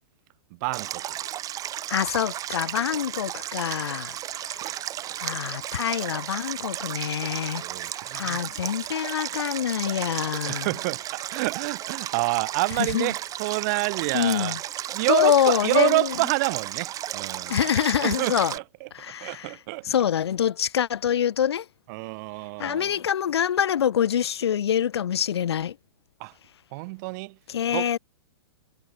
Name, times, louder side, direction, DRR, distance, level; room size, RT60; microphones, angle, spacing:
voice 1, 0.6-1.0 4.6-4.7 5.0-5.4 7.6-8.4 10.5-14.6 14.9-17.6 18.0-18.9 19.2-19.8 21.9-23.0 26.2-26.3 26.7-27.4 27.7-27.9, right 28 dB, 45° right, 2.5 m, -28 dB
Stream, 0.7-18.6, right 12 dB, 25° right, 4.9 m, -34 dB
voice 2, 1.9-4.1 4.5-4.6 5.2-7.6 8.1-10.7 12.9-13.1 14.1-14.6 15.1-16.1 17.5-18.5 18.9-19.5 19.8-21.6 22.6-25.7 27.5-28.0, left 9 dB, 80° left, 1.5 m, -25 dB
hypercardioid pair, 135°, 13 cm